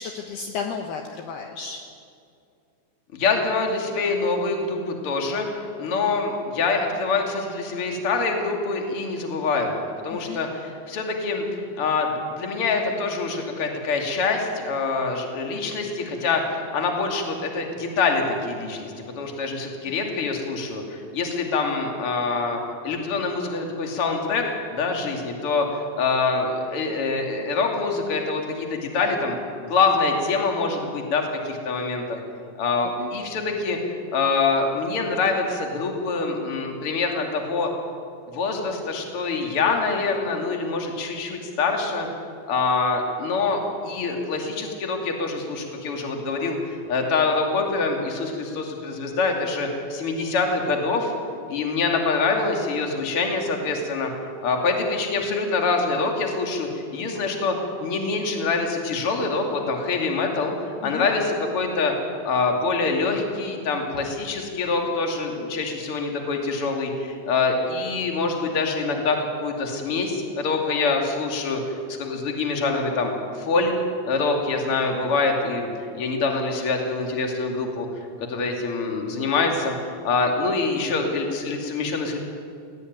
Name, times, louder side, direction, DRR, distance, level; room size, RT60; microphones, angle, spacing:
voice 1, 0.0-1.8 10.1-10.4 33.0-33.1 60.8-61.1, left 6 dB, 70° left, 3 dB, 2.8 m, -33 dB
voice 2, 3.1-5.5 5.8-9.8 10.0-11.4 11.8-24.4 24.7-29.4 29.6-32.2 32.6-33.8 34.1-37.7 38.3-42.1 42.5-51.1 51.5-54.1 54.4-61.9 62.2-73.7 74.0-75.7 75.9-77.9 78.3-82.2, left 4 dB, 35° left, 2 dB, 2.7 m, -25 dB
19.0 x 17.5 x 9.4 m, 2.4 s
omnidirectional pair, 5.4 m